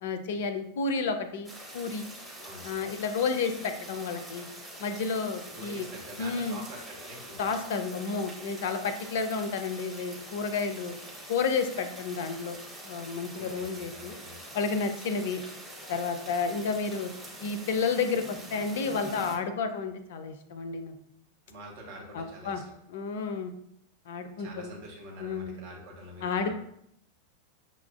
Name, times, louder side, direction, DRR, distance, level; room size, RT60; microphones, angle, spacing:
voice 1, 0.0-2.1 2.6-4.5 4.8-5.9 6.2-6.6 7.4-10.9 11.3-12.6 12.8-14.2 14.5-15.4 15.9-17.1 17.4-21.0 22.1-22.6 22.9-23.5 24.1-24.7 25.2-25.6 26.2-26.5, left 5 dB, 55° left, 9 dB, 0.4 m, -31 dB
sound 1, 1.4-19.4, right 1 dB, 5° right, 0.9 m, -45 dB
voice 2, 5.5-7.5 13.3-14.4 21.5-22.6 24.4-26.5, equal, 50° right, -1 dB, 1.1 m, -45 dB
5.9 x 2.3 x 2.4 m, 0.73 s
figure-of-eight pair, 90°, 0 cm